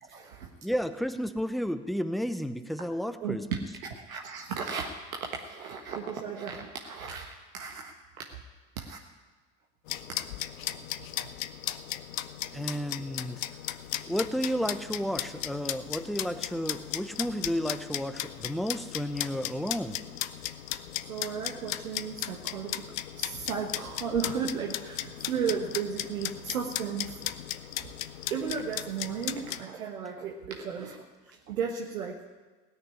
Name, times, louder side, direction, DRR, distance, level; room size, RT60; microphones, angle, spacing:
voice 1, 0.1-0.5 3.2-3.4 4.1-4.9 5.2-7.9 8.8-9.0 21.1-22.8 23.2-27.2 28.3-31.0 31.5-32.2, right 6 dB, 75° right, 1 dB, 1.4 m, -34 dB
voice 2, 0.6-3.7 12.5-13.4 14.1-20.0, equal, ahead, 9 dB, 0.8 m, -32 dB
sound 1, 9.9-29.6, left 13 dB, 65° left, 0.8 m, -36 dB
17.5 x 6.5 x 9.8 m, 1.3 s
figure-of-eight pair, 75°, 42 cm